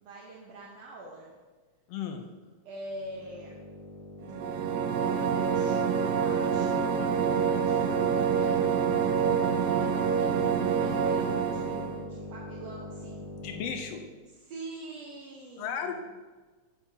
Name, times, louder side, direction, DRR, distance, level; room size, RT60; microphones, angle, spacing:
voice 1, 0.0-1.4 2.7-3.6 5.4-6.8 7.6-8.6 9.2-13.3 14.3-16.0, right 2 dB, 70° right, -3 dB, 2.0 m, -45 dB
voice 2, 1.9-2.3 13.4-14.0 15.6-16.0, left 7 dB, 75° left, 5 dB, 1.6 m, -35 dB
sound 1, 2.9-14.0, left 1 dB, 55° right, 2.5 m, -43 dB
sound 2, 4.2-12.1, right 7 dB, 85° right, 2.0 m, -27 dB
9.8 x 7.3 x 2.8 m, 1.3 s
omnidirectional pair, 3.3 m